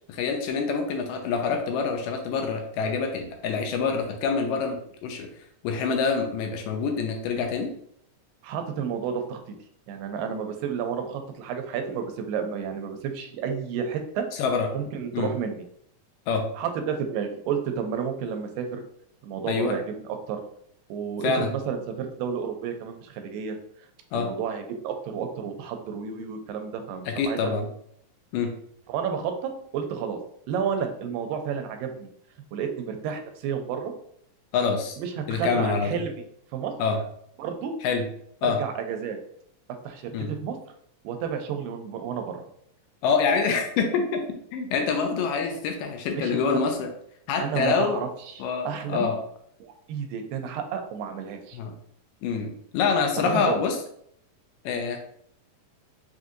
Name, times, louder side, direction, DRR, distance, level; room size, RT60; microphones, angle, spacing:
voice 1, 0.1-5.3 5.6-7.7 14.4-14.7 15.1-15.3 16.3-16.4 19.5-19.7 21.2-21.5 24.1-24.3 27.1-27.7 28.3-28.5 34.5-35.0 35.3-36.0 36.8-37.0 37.8-38.0 38.4-38.6 40.1-40.3 43.0-44.2 44.5-46.9 47.3-48.0 48.4-49.2 51.5-51.7 52.2-53.8 54.7-55.0, left 5 dB, 80° left, 3 dB, 2.2 m, -26 dB
voice 2, 8.4-9.4 9.9-14.3 14.7-15.6 16.6-18.8 19.2-20.4 20.9-23.6 24.1-27.5 28.9-30.2 30.5-32.1 32.5-33.9 35.0-36.1 36.5-36.7 37.4-37.7 38.4-39.2 39.8-40.1 40.4-40.6 41.0-42.4 46.2-46.6 47.4-49.1 49.6-51.6 53.2-53.6, right 7 dB, 85° right, 6 dB, 2.3 m, -31 dB
5.9 x 2.6 x 2.5 m, 0.66 s
omnidirectional pair, 4.0 m